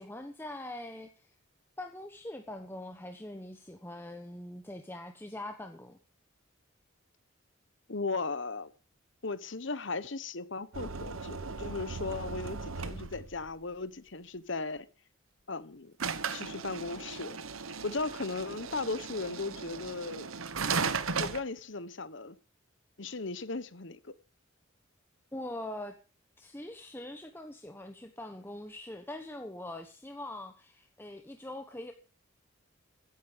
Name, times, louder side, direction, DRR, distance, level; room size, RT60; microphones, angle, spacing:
voice 1, 0.0-1.3 1.8-6.0 25.3-26.0 26.4-31.9, left 1 dB, 10° left, 1.1 m, -43 dB
voice 2, 7.9-8.7 9.2-14.9 15.5-15.9 16.3-17.4 17.8-20.3 21.2-22.4 23.0-24.1, left 3 dB, 60° left, 1.1 m, -37 dB
sound 1, 10.7-13.5 16.0-21.4, right 5 dB, 80° right, 1.2 m, -36 dB
16.0 x 10.5 x 5.2 m
head